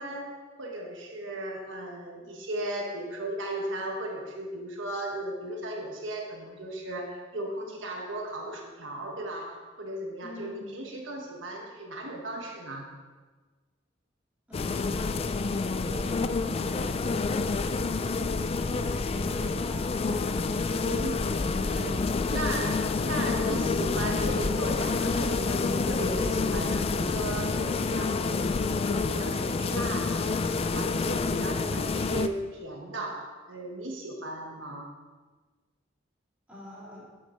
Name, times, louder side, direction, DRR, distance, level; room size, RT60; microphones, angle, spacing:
voice 1, 0.0-12.9 20.7-21.2 21.6-30.4 30.7-34.9, right 1 dB, 80° right, 1 dB, 1.2 m, -36 dB
voice 2, 10.2-10.8 14.5-14.9 15.5-18.2 18.7-20.4 31.2-31.7 36.5-37.1, equal, 5° right, -8 dB, 3.0 m, -44 dB
sound 1, 14.5-32.3, left 4 dB, 30° left, 0.3 m, -28 dB
9.5 x 6.7 x 4.3 m, 1.3 s
head